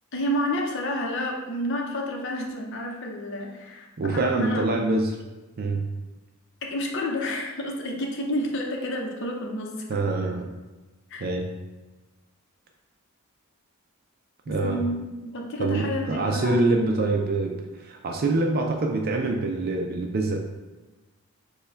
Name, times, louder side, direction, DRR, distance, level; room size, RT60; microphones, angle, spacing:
voice 1, 0.1-3.9 4.1-4.7 6.6-9.8 11.1-11.2 14.5-17.1, equal, 60° left, 0 dB, 0.7 m, -30 dB
voice 2, 4.0-5.2 5.6-5.9 9.9-10.5 11.2-11.5 14.5-14.8 15.6-20.4, right 2 dB, 45° right, 2 dB, 0.4 m, -25 dB
6.8 x 2.3 x 3.3 m, 1.2 s
head